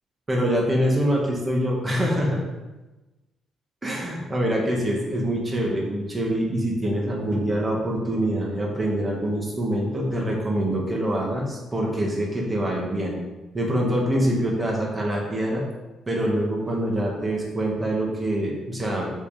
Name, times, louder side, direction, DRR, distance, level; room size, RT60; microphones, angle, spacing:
voice 1, 0.3-2.4 3.8-13.2 13.5-15.6 16.1-19.1, equal, 25° right, -2 dB, 2.0 m, -25 dB
6.7 x 5.5 x 5.2 m, 1.1 s
cardioid pair, 90°, 0 cm